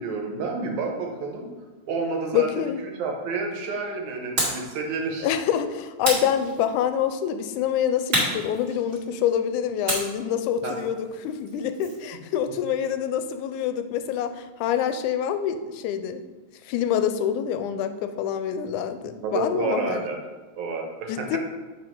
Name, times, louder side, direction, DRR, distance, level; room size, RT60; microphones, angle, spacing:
voice 1, 0.0-1.5 1.9-2.5 3.0-5.3 10.6-10.7 19.2-20.2 20.6-21.4, right 4 dB, 75° right, 1 dB, 2.3 m, -29 dB
voice 2, 2.3-2.8 5.2-16.2 16.6-20.0 21.1-21.4, left 9 dB, 85° left, 9 dB, 2.0 m, -26 dB
sound 1, 4.4-4.7 6.0-6.9 8.1-9.2 9.9-12.1, right 1 dB, 30° right, 1.9 m, -29 dB
6.2 x 4.9 x 4.4 m, 1.3 s
omnidirectional pair, 3.5 m